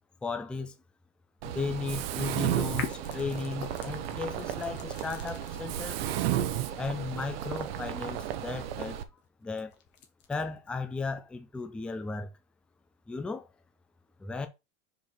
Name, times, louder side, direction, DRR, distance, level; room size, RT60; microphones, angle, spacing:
voice 1, 0.2-0.7 1.4-6.0 6.8-9.0 9.4-9.7 10.3-12.3 13.1-13.5 14.2-14.5, left 4 dB, 5° left, 0.4 m, -35 dB
Mechanisms, 1.4-9.0, right 11 dB, 65° right, 1.0 m, -33 dB
sound 1, 2.5-5.6 6.3-11.2, left 8 dB, 35° left, 1.5 m, -44 dB
5.2 x 5.0 x 4.4 m
supercardioid pair, 150°, 33 cm